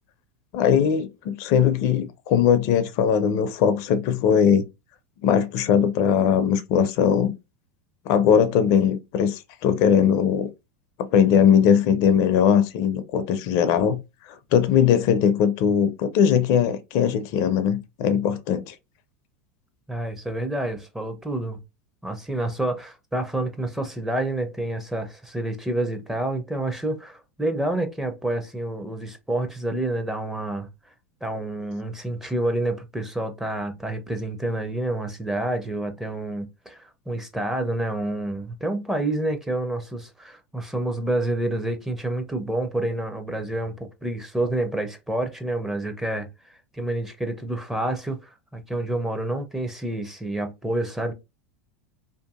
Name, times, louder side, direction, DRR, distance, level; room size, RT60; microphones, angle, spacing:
voice 1, 0.5-4.6 5.2-7.3 8.1-10.5 11.0-14.0 14.3-18.7, left 8 dB, 55° left, 0.4 m, -20 dB
voice 2, 19.9-21.6 22.0-30.7 31.2-46.3 46.7-51.1, right 1 dB, 5° right, 0.5 m, -28 dB
2.6 x 2.5 x 2.3 m
hypercardioid pair, 100°, 7 cm